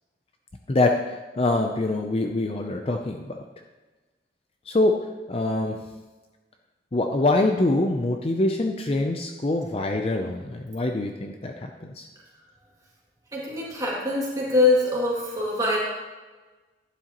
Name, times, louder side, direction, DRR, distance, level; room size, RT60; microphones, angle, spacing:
voice 1, 0.7-3.4 4.7-5.0 5.3-5.8 6.9-12.1, left 2 dB, 30° left, 4 dB, 0.5 m, -24 dB
voice 2, 13.3-15.8, left 2 dB, 20° right, -5 dB, 2.4 m, -23 dB
11.5 x 10.0 x 3.0 m, 1.3 s
head